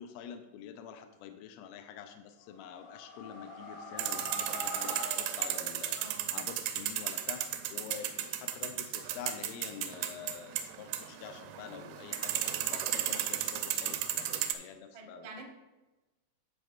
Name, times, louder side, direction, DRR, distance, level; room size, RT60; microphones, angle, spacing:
voice 1, 0.0-6.0 6.3-15.3, left 8 dB, 80° left, 7 dB, 2.0 m, -47 dB
sound 1, 2.4-6.2, left 1 dB, 60° left, 4.0 m, -43 dB
sound 2, 4.0-14.5, right 11 dB, 85° right, 2.5 m, -35 dB
voice 2, 6.0-6.4 13.0-13.2 14.9-15.5, right 3 dB, 70° right, 1 dB, 1.2 m, -48 dB
15.5 x 5.2 x 2.4 m, 1.1 s
omnidirectional pair, 4.1 m